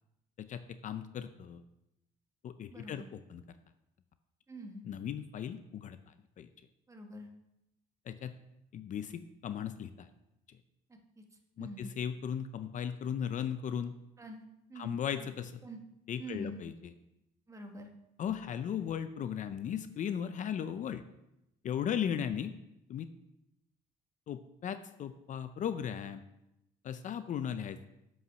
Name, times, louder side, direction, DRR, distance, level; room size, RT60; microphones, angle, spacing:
voice 1, 0.4-1.6 2.4-3.4 4.8-6.5 8.1-8.3 8.7-10.1 11.6-13.9 14.8-15.6 16.1-16.9 18.2-21.0 21.6-22.5 22.9-23.1 24.3-26.2 26.8-27.9, left 8 dB, 50° left, 11 dB, 0.5 m, -37 dB
voice 2, 2.7-3.0 4.5-4.8 6.9-7.3 11.6-11.9 14.2-14.4 14.7-15.3 15.6-15.8 16.2-16.6 17.5-17.9, right 1 dB, 20° right, 4 dB, 1.3 m, -45 dB
7.8 x 5.6 x 5.8 m, 0.88 s
cardioid pair, 110°, 17 cm